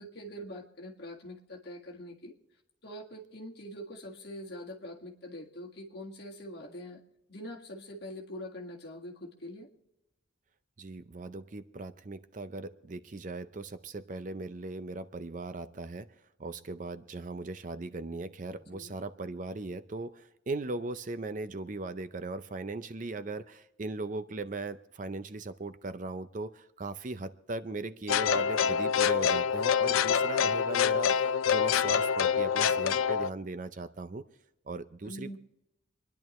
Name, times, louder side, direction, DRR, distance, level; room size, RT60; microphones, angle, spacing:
voice 1, 0.0-2.4 2.8-7.0 7.3-9.7 18.6-18.9 35.0-35.4, equal, 55° left, -1 dB, 1.9 m, -44 dB
voice 2, 10.8-16.1 16.4-34.2 34.7-35.4, right 2 dB, 40° right, 12 dB, 0.5 m, -38 dB
sound 1, 28.1-33.3, left 7 dB, 85° left, 0.4 m, -26 dB
28.0 x 10.5 x 3.1 m, 0.90 s
head